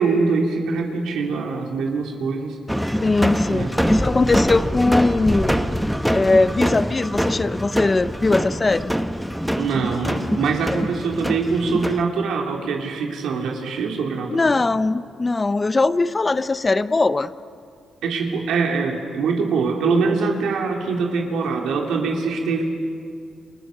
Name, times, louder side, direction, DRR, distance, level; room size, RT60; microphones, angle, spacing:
voice 1, 0.0-2.6 3.5-3.7 9.6-14.6 18.0-22.7, right 4 dB, 90° right, 1 dB, 3.3 m, -23 dB
sound 1, 2.7-12.0, equal, ahead, 1.1 m, -24 dB
voice 2, 3.0-5.6 6.1-8.9 14.3-17.3, left 3 dB, 20° left, 14 dB, 0.6 m, -20 dB
29.5 x 25.0 x 6.6 m, 2.3 s
cardioid pair, 145°, 0 cm